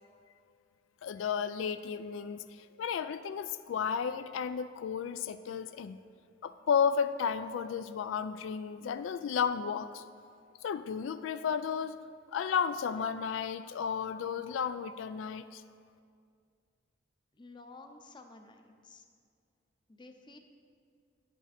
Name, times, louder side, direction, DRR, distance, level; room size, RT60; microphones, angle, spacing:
voice 1, 1.0-6.0 6.4-10.0 10.6-12.0 12.3-15.6, left 7 dB, 85° left, 12 dB, 0.3 m, -33 dB
voice 2, 17.3-19.0 19.9-20.4, left 3 dB, 25° left, 5 dB, 0.7 m, -52 dB
9.7 x 8.4 x 4.2 m, 2.3 s
head